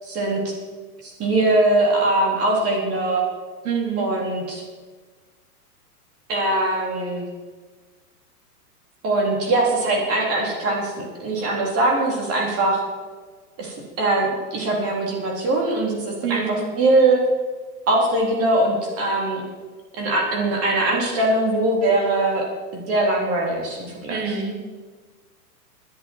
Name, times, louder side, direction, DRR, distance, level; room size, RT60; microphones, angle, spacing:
voice 1, 0.0-0.6 1.0-3.2 4.0-4.6 6.3-7.2 9.0-12.8 13.6-17.2 17.9-19.4 20.0-22.5 22.7-24.2, right 2 dB, 30° right, -1 dB, 3.8 m, -21 dB
voice 2, 3.6-4.1 16.2-16.7 24.1-24.6, right 6 dB, 65° right, 3 dB, 3.4 m, -26 dB
20.5 x 11.0 x 4.7 m, 1.4 s
hypercardioid pair, 135°, 48 cm